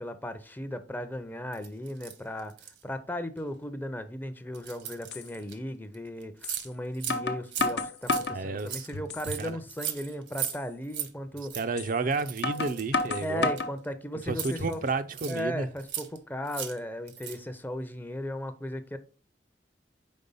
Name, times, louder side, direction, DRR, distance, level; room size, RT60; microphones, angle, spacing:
voice 1, 0.0-2.5 2.8-11.6 13.2-14.8 15.3-19.0, equal, 10° left, 0.5 m, -36 dB
sound 1, 1.5-2.8 3.4-3.5 4.5-5.5 5.9-6.0 6.2-6.7 6.9-7.2 7.4-10.6 10.8-11.1 11.4-11.6 12.1-13.9 14.3-15.4 15.8-16.2 16.5-16.8 17.1-17.4, right 10 dB, 80° right, 1.1 m, -38 dB
sound 2, 4.5-4.6 5.1-5.2 6.4-6.6 7.1-8.4 8.9-9.5 9.9-10.0 10.4-10.6 11.8-11.9 12.4-13.7 14.3-14.8, left 3 dB, 65° left, 0.8 m, -31 dB
voice 2, 8.3-8.9 9.4-9.6 11.6-13.5 14.3-15.7, right 3 dB, 50° right, 0.4 m, -31 dB
5.3 x 4.3 x 5.4 m
head